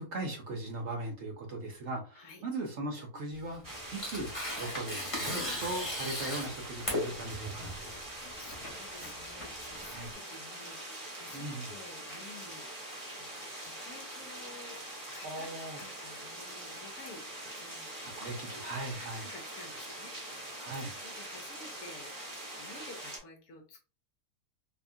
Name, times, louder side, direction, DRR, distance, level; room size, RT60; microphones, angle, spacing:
voice 1, 0.0-4.3 4.6-7.7 9.8-10.1 11.3-11.7 15.2-15.8 18.2-19.3 20.6-20.9, right 2 dB, 60° right, 2 dB, 0.7 m, -39 dB
Tearing, 3.3-10.1, left 1 dB, 20° left, 1.1 m, -38 dB
sound 1, 3.6-23.2, right 1 dB, 20° right, 0.5 m, -43 dB
voice 2, 7.9-14.8 15.1-15.5 15.8-18.7 19.0-20.6 21.0-22.1 22.6-23.8, left 3 dB, 65° left, 2 dB, 1.1 m, -52 dB
2.8 x 2.3 x 2.5 m, 0.34 s
omnidirectional pair, 1.8 m